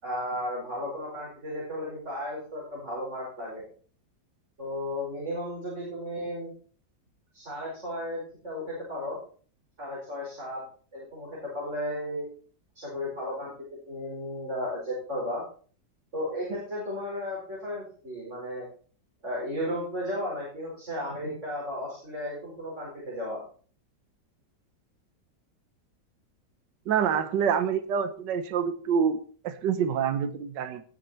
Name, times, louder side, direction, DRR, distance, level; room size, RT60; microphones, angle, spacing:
voice 1, 0.0-3.6 4.6-6.5 7.3-9.2 9.8-10.6 10.9-12.2 12.7-13.5 13.9-15.4 16.1-18.7 19.2-23.4, left 1 dB, 40° right, -5 dB, 5.4 m, -34 dB
voice 2, 26.9-30.8, right 7 dB, 80° right, 10 dB, 1.6 m, -27 dB
19.0 x 6.9 x 4.4 m, 0.43 s
omnidirectional pair, 1.9 m